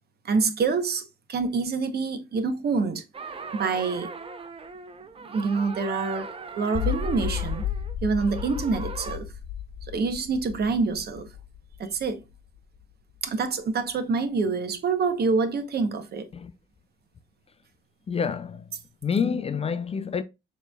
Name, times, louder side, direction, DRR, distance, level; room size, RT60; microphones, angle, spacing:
voice 1, 0.2-3.0 3.5-4.1 5.2-6.3 6.6-7.6 8.0-9.3 9.9-11.3 11.8-12.2 13.2-16.3, right 4 dB, 55° right, 0.9 m, -26 dB
sound 1, 3.1-9.2, right 4 dB, 30° right, 0.6 m, -39 dB
sound 2, 6.7-12.8, left 8 dB, 50° left, 1.1 m, -33 dB
voice 2, 18.1-18.7 19.0-20.2, left 6 dB, 30° left, 0.4 m, -27 dB
6.4 x 3.1 x 2.3 m
cardioid pair, 90°, 20 cm